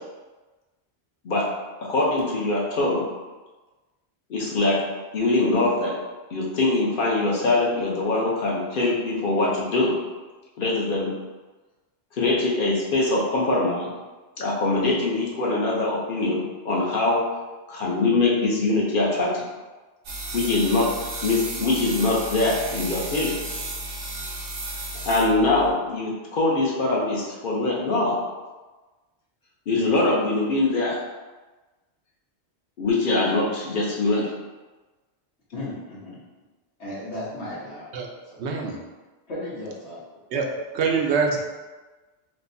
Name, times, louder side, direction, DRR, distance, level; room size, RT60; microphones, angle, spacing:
voice 1, 1.9-3.0 4.3-4.8 5.1-5.9 6.3-9.9 10.6-11.1 12.2-13.9 14.4-17.2 17.7-19.4 20.3-20.8 21.2-23.3 25.0-28.2 29.7-31.0 32.8-34.3, left 2 dB, 55° left, -4 dB, 0.9 m, -23 dB
sound 1, 20.0-25.7, right 2 dB, 60° right, 0.7 m, -33 dB
voice 2, 35.5-36.2 36.8-37.9 38.3-38.4 39.3-40.0, left 1 dB, 80° left, -8 dB, 1.5 m, -35 dB
voice 3, 38.4-38.8 40.3-40.5 40.7-41.4, right 5 dB, 90° right, 1 dB, 0.9 m, -24 dB
4.7 x 2.2 x 2.6 m, 1.2 s
omnidirectional pair, 1.1 m